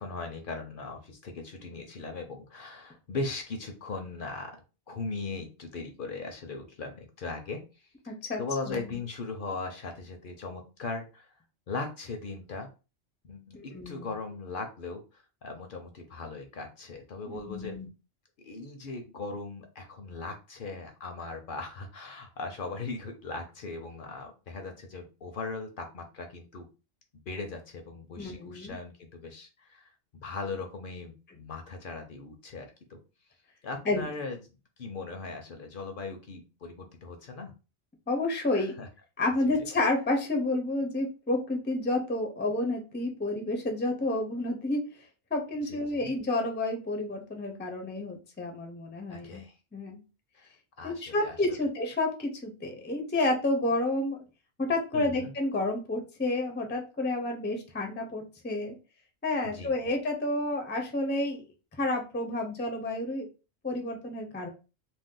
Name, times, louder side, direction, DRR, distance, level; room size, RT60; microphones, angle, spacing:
voice 1, 0.0-4.6 4.9-7.6 8.0-11.3 11.7-12.7 13.2-17.8 18.4-26.7 27.3-29.9 30.2-33.0 33.6-34.4 34.8-37.5 38.6-38.9 45.6-46.1 49.1-49.5 50.3-50.5 50.8-51.6 54.9-55.3 59.4-59.7, left 3 dB, 60° left, 5 dB, 0.7 m, -39 dB
voice 2, 8.1-8.4 8.7-9.0 13.5-14.1 17.2-17.9 28.2-28.8 33.9-34.1 38.1-38.7 39.2-44.8 45.3-49.4 49.7-50.0 50.8-54.2 54.7-58.7 59.2-61.4 61.8-63.3 63.6-64.5, left 2 dB, 15° left, 3 dB, 0.4 m, -30 dB
2.6 x 2.2 x 3.6 m, 0.31 s
omnidirectional pair, 1.1 m